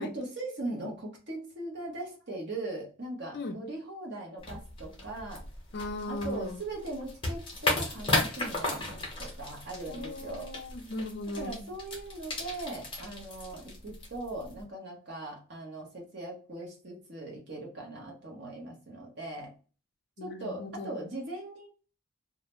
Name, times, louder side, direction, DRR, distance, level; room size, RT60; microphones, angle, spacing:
voice 1, 0.0-5.4 6.1-10.5 11.3-19.5 20.2-21.7, right 2 dB, 50° right, 0.9 m, -40 dB
sound 1, 4.4-14.6, left 2 dB, 25° left, 0.7 m, -35 dB
voice 2, 5.7-6.6 9.9-11.7 20.2-20.9, left 1 dB, 50° left, 0.4 m, -37 dB
2.4 x 2.1 x 3.0 m
head